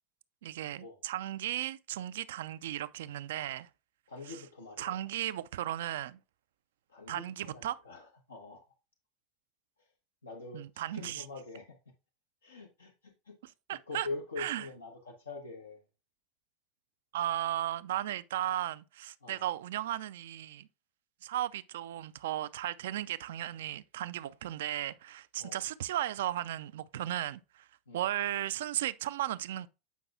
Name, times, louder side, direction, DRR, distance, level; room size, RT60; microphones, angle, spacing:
voice 1, 0.4-3.7 4.3-4.4 4.8-6.2 7.1-7.8 10.5-11.3 13.4-14.1 14.4-14.7 17.1-20.7 21.2-27.7 27.9-29.7, right 13 dB, 70° right, 0.4 m, -35 dB
voice 2, 4.1-4.9 6.9-8.7 10.2-11.8 12.4-13.4 13.7-15.8 19.2-19.4 25.4-25.6 27.9-28.0, left 3 dB, 85° left, 0.9 m, -44 dB
8.2 x 5.3 x 2.3 m
hypercardioid pair, 80°, 0 cm